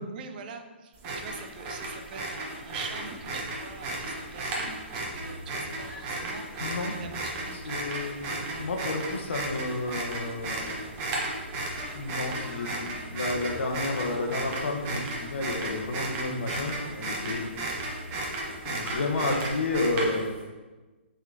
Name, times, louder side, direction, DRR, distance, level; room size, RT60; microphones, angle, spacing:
voice 1, 0.1-7.8 8.2-8.7, right 6 dB, 45° right, 6 dB, 0.6 m, -44 dB
sound 1, 0.9-20.4, right 2 dB, 30° right, 1.2 m, -34 dB
sound 2, 2.8-18.6, equal, 10° left, 1.8 m, -47 dB
voice 2, 6.6-7.0 7.5-10.7 11.9-17.5 18.6-20.3, left 2 dB, 70° left, 2 dB, 1.2 m, -31 dB
5.9 x 4.2 x 3.9 m, 1.2 s
hypercardioid pair, 145°, 7 cm